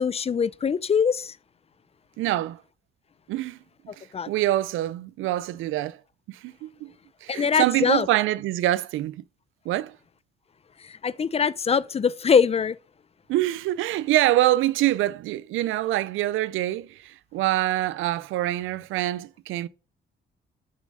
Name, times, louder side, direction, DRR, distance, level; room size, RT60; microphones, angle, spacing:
voice 1, 0.0-1.3 4.1-4.3 7.3-8.1 11.0-12.8, left 6 dB, 30° left, 0.4 m, -22 dB
voice 2, 2.2-2.6 3.3-3.6 4.3-6.0 6.3-6.9 7.2-9.2 9.7-9.9 13.3-19.7, right 15 dB, 85° right, 0.5 m, -25 dB
6.9 x 6.3 x 5.4 m
cardioid pair, 90°, 20 cm